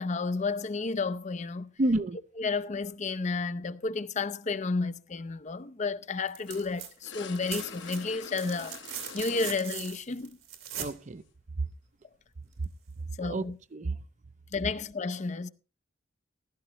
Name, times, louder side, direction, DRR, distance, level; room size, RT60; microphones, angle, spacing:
voice 1, 0.0-1.7 2.4-8.8 9.1-10.4 13.2-13.6 14.5-15.5, left 4 dB, 35° left, 0.5 m, -31 dB
voice 2, 1.8-2.2 10.7-11.2 13.2-14.0, right 2 dB, 35° right, 0.5 m, -30 dB
sound 1, 6.3-6.9 7.2-11.0 12.6-12.7, right 9 dB, 85° right, 2.9 m, -40 dB
sound 2, 6.4-9.7 10.6-10.7 12.4-12.5, left 5 dB, 65° left, 1.1 m, -45 dB
15.5 x 12.5 x 2.9 m
head